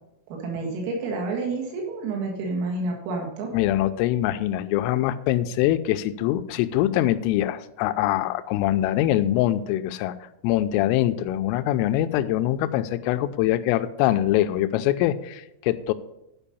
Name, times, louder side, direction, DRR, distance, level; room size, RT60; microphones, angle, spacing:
voice 1, 0.3-3.5, right 3 dB, 85° right, -1 dB, 4.6 m, -29 dB
voice 2, 3.5-10.1 10.4-15.9, left 13 dB, 85° left, 11 dB, 3.1 m, -23 dB
11.5 x 5.3 x 6.9 m, 0.86 s
omnidirectional pair, 5.8 m